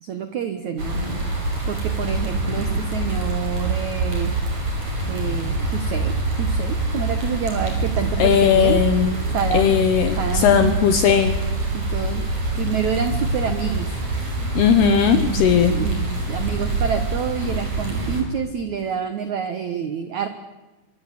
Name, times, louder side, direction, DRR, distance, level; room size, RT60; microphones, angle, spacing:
voice 1, 0.0-1.0 1.7-4.3 5.1-8.8 9.3-9.8 10.2-10.7 11.7-12.3 12.6-13.9 14.8-20.3, right 7 dB, 65° right, 9 dB, 1.8 m, -28 dB
sound 1, 0.8-18.2, right 2 dB, 40° right, 7.2 m, -25 dB
voice 2, 8.2-9.1 9.5-11.4 14.5-15.7, left 8 dB, 70° left, 8 dB, 3.0 m, -17 dB
26.0 x 24.0 x 8.5 m, 1.1 s
omnidirectional pair, 5.3 m